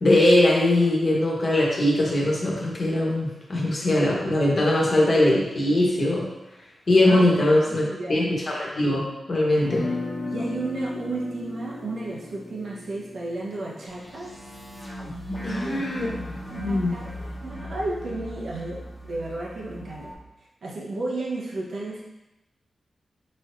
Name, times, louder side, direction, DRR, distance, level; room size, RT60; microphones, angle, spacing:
voice 1, 0.0-6.2 6.9-7.8 8.1-9.9 15.4-16.1 16.5-16.9, left 1 dB, 45° left, -3 dB, 1.2 m, -21 dB
voice 2, 7.6-8.3 9.7-9.9 10.2-14.3 15.4-15.8 16.5-20.1 20.6-22.0, right 2 dB, 70° right, -4 dB, 1.0 m, -33 dB
sound 1, 9.6-15.6, left 3 dB, 75° left, 0.8 m, -36 dB
sound 2, 13.9-20.1, equal, 15° left, 1.1 m, -37 dB
4.3 x 4.3 x 2.6 m, 0.98 s
wide cardioid pair, 95°, 0 cm